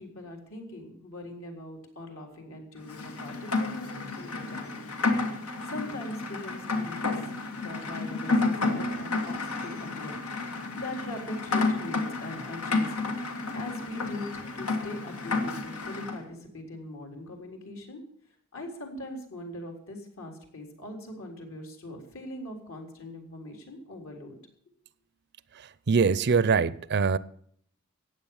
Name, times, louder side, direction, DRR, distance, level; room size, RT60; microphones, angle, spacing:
voice 1, 0.0-4.7 5.6-7.1 7.6-18.0 18.5-24.4, left 1 dB, 70° left, 4.0 m, -41 dB
Rain, 2.9-16.2, left 3 dB, 90° left, 2.2 m, -31 dB
voice 2, 25.9-27.2, right 5 dB, 55° right, 0.5 m, -23 dB
15.0 x 9.4 x 7.2 m
head